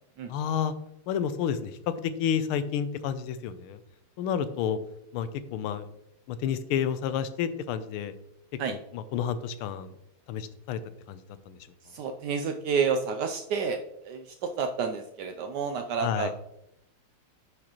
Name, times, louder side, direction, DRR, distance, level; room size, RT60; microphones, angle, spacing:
voice 1, 0.3-0.7 1.1-3.8 4.2-4.8 5.1-5.9 6.3-8.1 8.7-9.9 10.3-10.8 11.1-11.2 11.5-11.6 16.0-16.3, left 8 dB, 80° left, 12 dB, 1.5 m, -30 dB
voice 2, 11.8-16.3, right 6 dB, 85° right, 6 dB, 0.9 m, -30 dB
11.0 x 4.8 x 3.0 m, 0.81 s
omnidirectional pair, 2.4 m